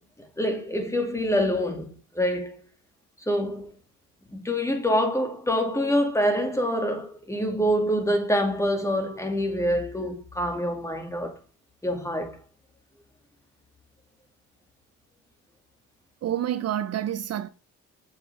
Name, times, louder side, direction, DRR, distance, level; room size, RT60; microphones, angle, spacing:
voice 1, 0.2-2.6 3.3-3.7 4.3-11.4 11.8-12.4, equal, 10° left, 2.3 m, -26 dB
voice 2, 16.2-17.5, right 11 dB, 55° right, 0.6 m, -28 dB
7.4 x 7.4 x 3.5 m
cardioid pair, 90°, 30 cm